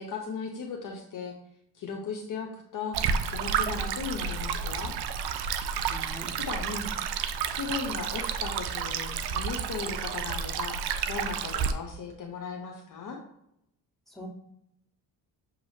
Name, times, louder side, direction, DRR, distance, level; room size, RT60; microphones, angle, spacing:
voice 1, 0.0-1.4 1.7-3.0 3.3-5.0 6.4-6.9 7.5-10.8 11.1-13.2, left 5 dB, 45° left, 1 dB, 0.8 m, -37 dB
Stream, 2.9-11.7, right 7 dB, 65° right, 0.5 m, -31 dB
voice 2, 5.8-6.3 14.1-14.3, equal, ahead, -6 dB, 1.7 m, -43 dB
6.4 x 2.8 x 2.7 m, 0.77 s
supercardioid pair, 65°, 43 cm